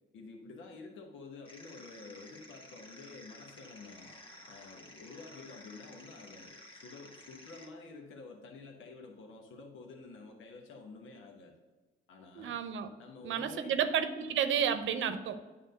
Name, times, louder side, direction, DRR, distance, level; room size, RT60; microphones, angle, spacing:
voice 1, 0.1-4.1 4.5-11.5 12.1-12.6 13.0-13.8, left 3 dB, 80° left, 1 dB, 1.2 m, -50 dB
sound 1, 1.4-7.7, left 1 dB, 25° left, 1.5 m, -53 dB
voice 2, 12.4-12.9 13.2-15.4, right 8 dB, 75° right, 10 dB, 0.8 m, -31 dB
9.2 x 3.6 x 6.5 m, 1.3 s
cardioid pair, 90°, 20 cm